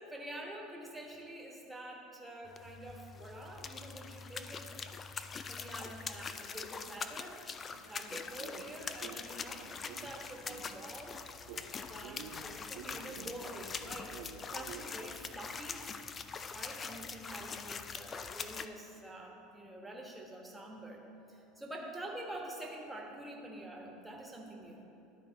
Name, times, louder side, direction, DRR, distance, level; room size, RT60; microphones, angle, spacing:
voice 1, 0.0-4.7 5.5-14.2 14.5-15.9 16.5-21.0 21.3-24.8, right 1 dB, 5° right, 0 dB, 1.3 m, -47 dB
sound 1, 2.5-18.7, left 5 dB, 30° left, 0.4 m, -43 dB
sound 2, 7.7-11.1 11.5-14.8, right 7 dB, 70° right, 0.6 m, -51 dB
12.0 x 4.1 x 4.0 m, 2.9 s
supercardioid pair, 95°, 0 cm